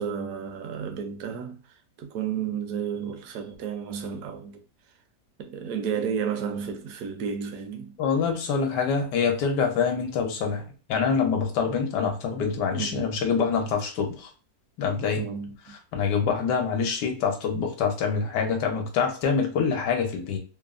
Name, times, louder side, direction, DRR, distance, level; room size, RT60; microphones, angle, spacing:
voice 1, 0.0-1.6 2.0-4.6 5.4-8.0 12.8-13.1 15.2-15.7, right 7 dB, 70° right, 0.9 m, -32 dB
voice 2, 8.0-10.6 10.9-14.3 14.8-15.3 15.9-20.4, left 6 dB, 85° left, 1.4 m, -25 dB
3.3 x 2.0 x 2.4 m
omnidirectional pair, 1.8 m